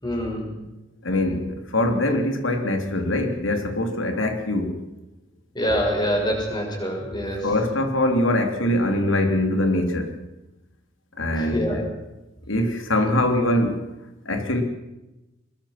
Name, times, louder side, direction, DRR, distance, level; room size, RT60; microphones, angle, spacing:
voice 1, 0.0-0.5 5.5-7.4 11.4-11.8 13.1-13.3, equal, 20° left, 1 dB, 6.4 m, -25 dB
voice 2, 1.0-4.8 7.4-10.2 11.2-11.9 12.5-13.9 14.3-14.6, left 1 dB, 85° left, 5 dB, 3.5 m, -23 dB
23.5 x 22.0 x 6.0 m, 0.99 s
head